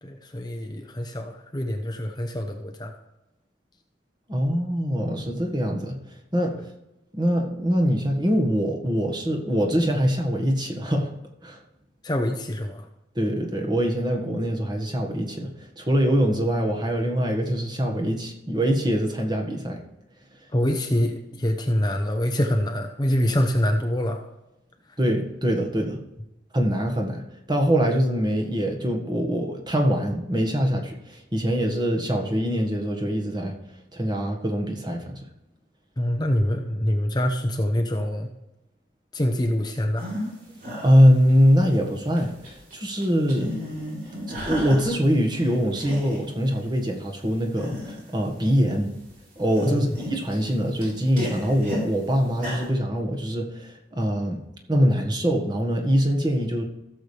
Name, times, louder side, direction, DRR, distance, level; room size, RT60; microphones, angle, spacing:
voice 1, 0.0-2.9 12.0-12.9 20.5-24.2 36.0-38.3 39.1-40.1 49.6-49.8, equal, 20° left, 3 dB, 0.8 m, -25 dB
voice 2, 4.3-6.0 6.3-6.5 7.1-11.1 11.4-11.6 13.1-19.8 25.0-26.0 26.5-33.5 33.9-35.2 40.8-43.5 44.3-49.0 49.4-54.4 54.7-56.6, equal, 25° right, 2 dB, 1.5 m, -23 dB
sound 1, 40.0-40.3 40.6-41.7 42.0-42.7 43.0-45.0 45.3-46.3 46.8-46.9 47.5-48.1 48.7-49.1 49.4-51.9 52.3-52.7, left 1 dB, 45° right, 4.2 m, -34 dB
16.0 x 7.1 x 3.4 m, 0.94 s
head